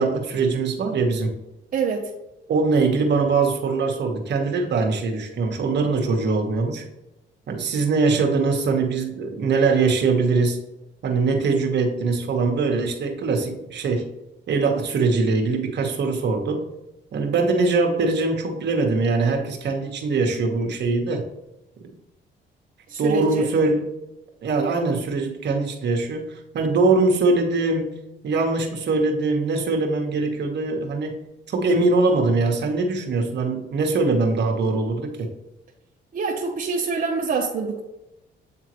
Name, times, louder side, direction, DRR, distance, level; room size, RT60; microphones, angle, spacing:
voice 1, 0.0-1.3 2.5-6.8 7.5-10.6 11.0-14.1 14.5-16.7 17.1-21.3 23.0-23.9 24.4-35.3, right 3 dB, 60° right, 3 dB, 1.3 m, -22 dB
voice 2, 1.7-2.1 22.9-23.5 36.1-37.8, right 5 dB, 45° right, -1 dB, 0.8 m, -25 dB
8.4 x 3.7 x 3.1 m, 0.96 s
cardioid pair, 90°, 20 cm